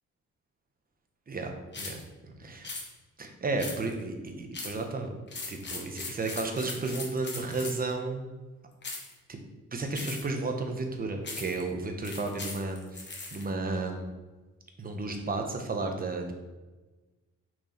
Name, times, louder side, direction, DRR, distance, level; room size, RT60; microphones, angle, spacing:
voice 1, 1.3-2.7 3.2-5.1 5.5-8.3 9.3-9.4 9.7-13.0 13.3-14.1 14.8-16.3, right 3 dB, 30° right, 4 dB, 0.9 m, -33 dB
sound 1, 1.7-2.0 2.6-2.9 3.6-4.0 4.5-4.8 5.3-7.9 8.8-9.1 9.9-10.4 11.2-11.6 12.0-13.4, left 3 dB, 35° left, 1.3 m, -39 dB
6.1 x 4.5 x 4.4 m, 1.2 s
wide cardioid pair, 135°, 31 cm